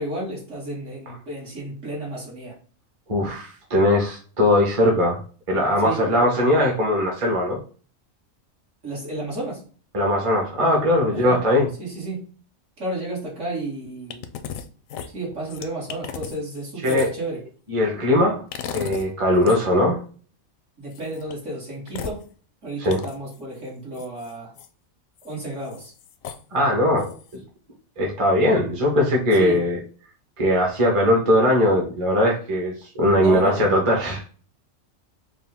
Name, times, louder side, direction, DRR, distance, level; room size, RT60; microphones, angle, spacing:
voice 1, 0.0-2.6 5.8-6.0 8.8-9.6 11.1-11.4 11.8-12.2 12.8-14.3 15.1-17.4 20.8-22.2 22.6-24.5 25.2-25.9 29.4-29.7 33.2-33.7, right 1 dB, 65° right, -4 dB, 2.2 m, -32 dB
voice 2, 3.1-5.2 5.5-7.6 9.9-11.7 16.8-17.1 17.7-18.4 18.7-20.0 22.8-23.0 26.5-27.1 28.0-29.8 30.4-34.2, left 1 dB, 25° right, -1 dB, 1.0 m, -20 dB
sound 1, 14.1-14.6 14.9-17.3 18.5-19.1 19.4-19.6 20.9-21.3 21.9-22.2 22.8-23.4 23.9-24.7 25.2-25.3 25.6-26.4 27.0-27.4, left 8 dB, 80° left, 1.0 m, -35 dB
5.1 x 2.3 x 3.5 m, 0.40 s
omnidirectional pair, 1.4 m